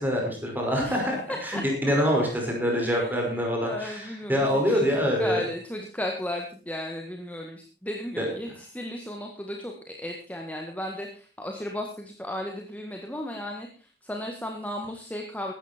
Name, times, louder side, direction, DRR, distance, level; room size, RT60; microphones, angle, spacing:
voice 1, 0.0-1.2 1.4-5.5 8.2-8.3, equal, 10° right, 0 dB, 5.5 m, -25 dB
voice 2, 1.3-3.2 3.6-15.5, left 1 dB, 10° left, 1 dB, 1.7 m, -35 dB
16.0 x 12.5 x 4.4 m, 0.38 s
head